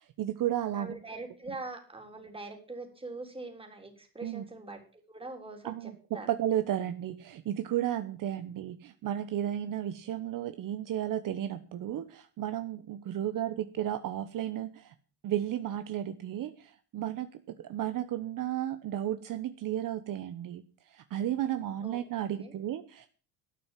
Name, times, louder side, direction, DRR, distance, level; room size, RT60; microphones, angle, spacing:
voice 1, 0.0-0.9 4.2-4.4 5.6-6.0 6.3-14.9 15.2-23.1, right 11 dB, 55° right, 10 dB, 1.1 m, -33 dB
voice 2, 0.7-6.3 13.4-13.5 21.8-22.0 22.3-22.6, right 3 dB, 15° right, 4 dB, 3.8 m, -43 dB
12.0 x 9.1 x 7.4 m, 0.40 s
cardioid pair, 110°, 40 cm